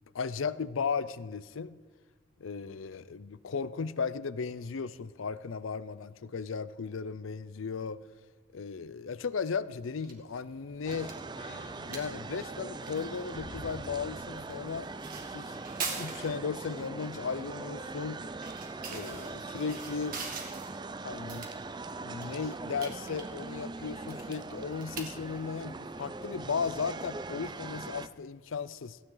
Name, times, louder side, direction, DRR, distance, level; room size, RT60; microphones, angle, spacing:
voice 1, 0.1-1.8 2.4-8.0 8.5-11.1 11.8-14.9 15.3-15.6 16.0-18.2 18.9-20.2 21.0-21.5 22.0-29.0, left 5 dB, 85° left, 0.5 m, -36 dB
sound 1, 9.8-28.2, right 4 dB, 45° right, 2.1 m, -46 dB
sound 2, 10.0-16.0 16.4-16.5, left 2 dB, 60° left, 1.0 m, -52 dB
sound 3, 10.9-28.1, right 3 dB, 20° right, 0.4 m, -41 dB
16.5 x 16.0 x 3.9 m
head